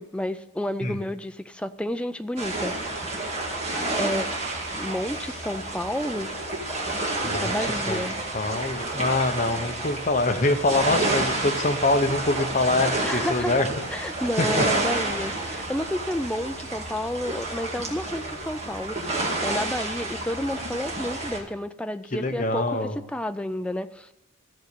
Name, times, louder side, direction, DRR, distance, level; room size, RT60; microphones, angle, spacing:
voice 1, 0.0-3.2 3.9-4.3 4.8-6.3 7.4-8.2 13.0-13.6 13.9-24.1, left 1 dB, 5° left, 10 dB, 0.4 m, -31 dB
sound 1, 2.4-21.4, right 2 dB, 30° right, 2.2 m, -30 dB
voice 2, 8.3-13.7 14.4-14.6 22.1-23.0, left 2 dB, 40° left, 6 dB, 1.0 m, -24 dB
14.5 x 6.6 x 6.8 m, 0.91 s
head